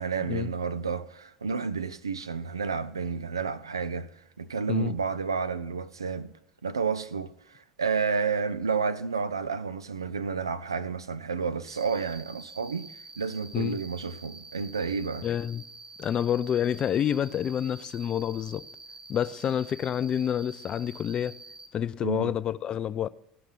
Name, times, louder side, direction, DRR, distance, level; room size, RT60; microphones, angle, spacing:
voice 1, 0.0-4.1 4.4-6.3 6.6-15.3 22.0-22.3, right 5 dB, 85° right, 0.4 m, -31 dB
Cricket, 11.7-21.7, right 3 dB, 30° right, 1.5 m, -47 dB
voice 2, 15.2-15.6 16.0-18.7 19.1-21.4 21.7-23.1, left 9 dB, 40° left, 0.4 m, -28 dB
16.5 x 5.8 x 5.6 m
figure-of-eight pair, 70°, 2 cm